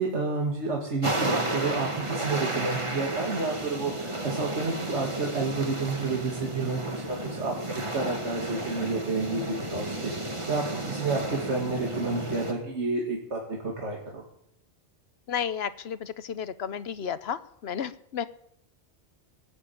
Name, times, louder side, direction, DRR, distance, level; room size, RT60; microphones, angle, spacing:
voice 1, 0.0-7.5 7.9-14.2, right 3 dB, 80° right, -1 dB, 2.4 m, -30 dB
sound 1, 1.0-12.5, right 1 dB, 25° right, 1.7 m, -32 dB
voice 2, 15.3-18.2, left 8 dB, 65° left, 15 dB, 1.0 m, -32 dB
18.5 x 7.3 x 8.6 m, 0.72 s
omnidirectional pair, 1.2 m